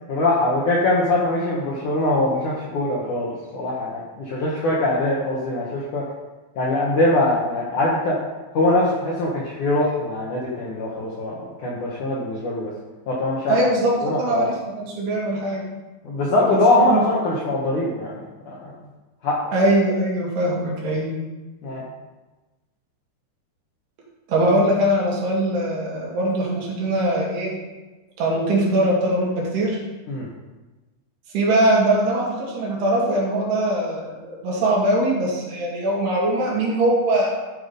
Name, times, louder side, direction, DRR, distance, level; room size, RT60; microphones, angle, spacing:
voice 1, 0.1-6.0 6.6-8.2 8.5-12.7 13.1-13.6 14.0-14.5 16.0-18.7 19.2-19.4 21.6-21.8 30.1-30.3, left 2 dB, 60° left, -5 dB, 2.1 m, -22 dB
voice 2, 13.5-13.9 14.2-15.6 16.4-17.1 19.5-21.1 24.3-27.5 28.2-29.8 31.3-37.3, right 1 dB, 65° right, -3 dB, 4.0 m, -21 dB
13.5 x 5.9 x 5.3 m, 1.2 s
omnidirectional pair, 5.4 m